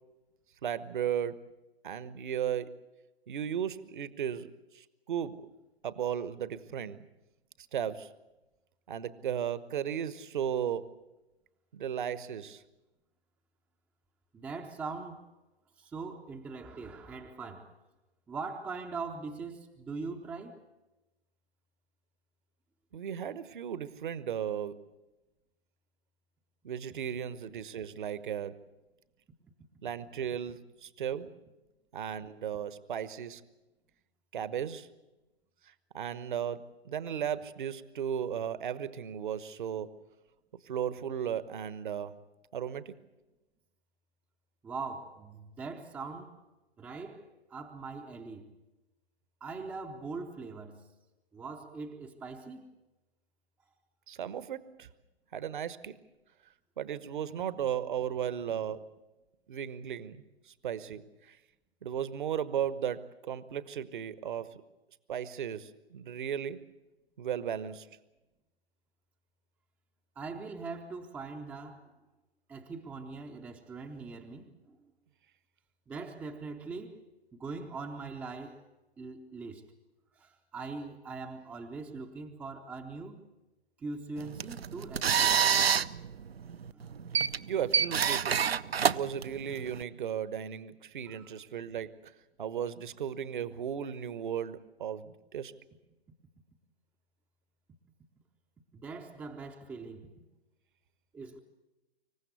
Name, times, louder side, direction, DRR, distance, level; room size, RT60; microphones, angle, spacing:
voice 1, 0.6-1.4 1.8-2.7 3.3-5.4 5.8-7.1 7.7-8.1 8.9-10.9 11.7-12.6 22.9-24.8 26.6-28.6 29.8-31.3 31.9-33.4 34.3-34.9 35.6-40.0 40.6-42.2 42.5-43.0 54.1-54.9 55.3-56.0 56.8-58.9 59.5-61.4 61.8-64.6 65.1-66.6 67.2-67.9 87.5-88.4 88.8-92.1 92.4-95.5, right 9 dB, 50° right, 1.2 m, -35 dB
voice 2, 14.3-15.2 15.8-17.7 18.3-20.6 44.6-46.4 46.8-48.5 49.4-50.9 51.3-52.8 70.2-71.9 72.5-74.9 75.9-77.0 77.3-78.7 79.0-79.7 80.2-83.3 83.8-85.5 86.7-86.9 91.1-91.3 98.7-100.1 101.1-101.4, right 4 dB, 5° right, 0.6 m, -42 dB
sound 1, 84.2-89.8, right 7 dB, 70° right, 0.8 m, -28 dB
26.0 x 15.5 x 8.2 m
figure-of-eight pair, 135°, 31 cm